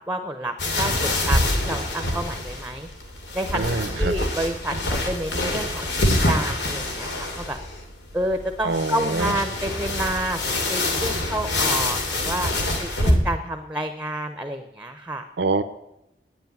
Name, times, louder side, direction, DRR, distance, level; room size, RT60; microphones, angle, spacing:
voice 1, 0.1-2.9 3.3-3.6 4.0-6.0 6.3-7.6 8.1-10.4 10.7-12.5 12.8-15.2, right 1 dB, 10° right, 7 dB, 0.8 m, -29 dB
sound 1, 0.6-13.1, left 1 dB, 85° left, 2.7 m, -25 dB
voice 2, 3.5-4.1 8.6-9.4 15.4-15.6, right 3 dB, 80° right, 9 dB, 0.7 m, -25 dB
9.8 x 9.7 x 9.5 m, 0.87 s
head